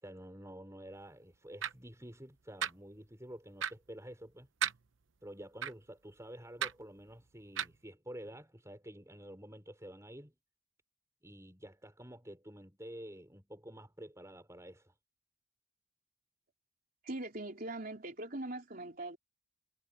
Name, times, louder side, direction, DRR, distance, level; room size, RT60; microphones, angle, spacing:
voice 1, 0.0-4.5 5.2-10.3 11.2-14.9, equal, 15° right, 5.5 m, -49 dB
sound 1, 1.6-1.7 2.6-2.7 3.6-3.7 4.6-4.8 5.6-5.7 6.6-6.7 7.6-7.7, right 8 dB, 75° right, 0.8 m, -33 dB
voice 2, 17.0-19.2, right 2 dB, 50° right, 4.0 m, -41 dB
head